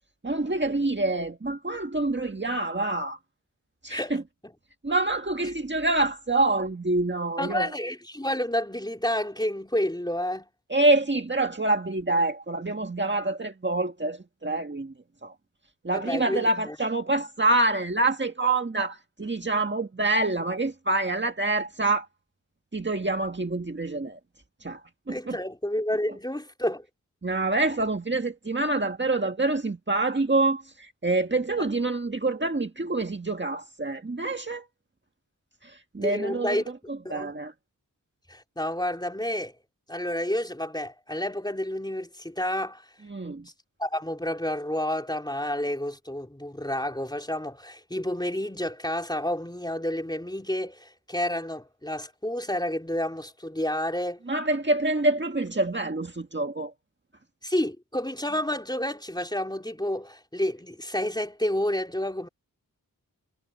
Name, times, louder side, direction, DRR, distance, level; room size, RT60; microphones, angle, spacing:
voice 1, 0.2-3.2 3.8-4.2 4.8-7.7 10.7-14.9 15.2-15.4 15.8-22.1 22.7-24.2 24.6-25.4 27.2-34.7 35.6-36.6 37.1-37.5 43.1-43.5 54.3-56.7, right 2 dB, 30° right, 1.8 m, -26 dB
voice 2, 7.4-10.5 15.9-16.8 25.1-26.9 36.0-36.6 37.0-37.3 38.3-39.6 39.9-42.9 43.8-54.2 57.4-62.3, left 1 dB, 10° left, 3.6 m, -30 dB
wide cardioid pair, 65°, 34 cm